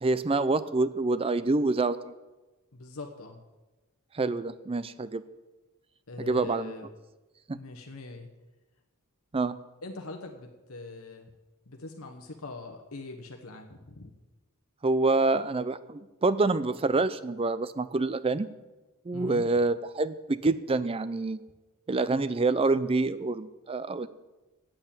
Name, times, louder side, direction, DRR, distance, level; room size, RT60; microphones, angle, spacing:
voice 1, 0.0-2.0 4.1-5.2 6.2-6.7 7.5-7.6 9.3-9.6 14.8-18.5 19.1-21.4 21.9-24.1, right 3 dB, 25° right, 15 dB, 0.4 m, -27 dB
voice 2, 2.7-3.4 6.1-6.9 7.5-8.3 9.8-11.3 11.7-14.1 19.1-19.5, left 3 dB, 70° left, 3 dB, 1.0 m, -42 dB
8.8 x 8.1 x 8.5 m, 1.1 s
head